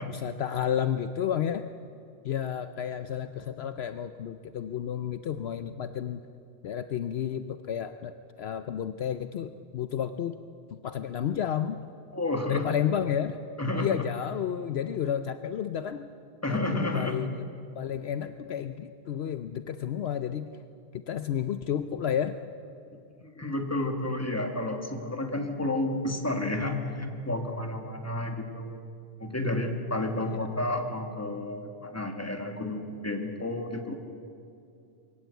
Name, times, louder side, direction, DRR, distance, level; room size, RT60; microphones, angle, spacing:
voice 1, 0.1-1.7 2.2-6.2 6.6-8.1 8.4-10.3 10.7-11.8 12.5-13.4 13.8-16.1 16.5-17.4 17.8-20.5 20.9-22.4 30.2-30.4, left 9 dB, 65° left, 10 dB, 0.9 m, -31 dB
voice 2, 12.1-12.7 13.6-14.1 16.4-17.3 22.9-28.8 29.2-34.0, left 2 dB, 15° left, 4 dB, 1.8 m, -31 dB
22.5 x 17.0 x 8.2 m, 2.5 s
omnidirectional pair, 1.2 m